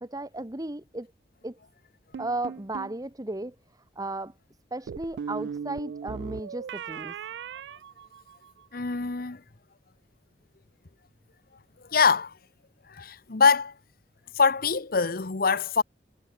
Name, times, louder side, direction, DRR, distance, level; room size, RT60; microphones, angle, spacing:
voice 1, 0.0-1.1 1.4-1.6 2.2-3.5 4.0-4.3 4.7-7.1, right 2 dB, 20° right, 1.3 m, -34 dB
sound 1, 2.1-3.0 4.9-8.6, right 7 dB, 75° right, 0.3 m, -38 dB
voice 2, 8.7-9.4 11.9-12.3 12.9-13.7 14.3-15.8, left 5 dB, 55° left, 1.0 m, -23 dB
head